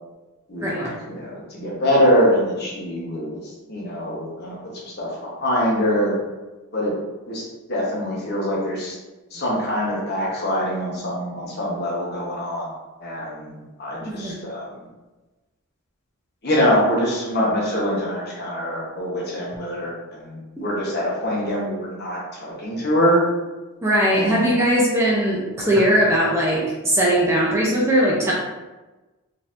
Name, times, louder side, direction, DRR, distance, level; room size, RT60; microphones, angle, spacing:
voice 1, 0.5-3.4 3.7-6.1 6.7-7.0 7.3-9.0 9.3-12.7 13.0-14.8 16.4-23.3 24.0-24.5, equal, 45° left, -4 dB, 1.0 m, -24 dB
voice 2, 14.0-14.4 23.8-28.3, equal, 10° right, -5 dB, 0.5 m, -19 dB
3.8 x 2.8 x 2.5 m, 1.1 s
head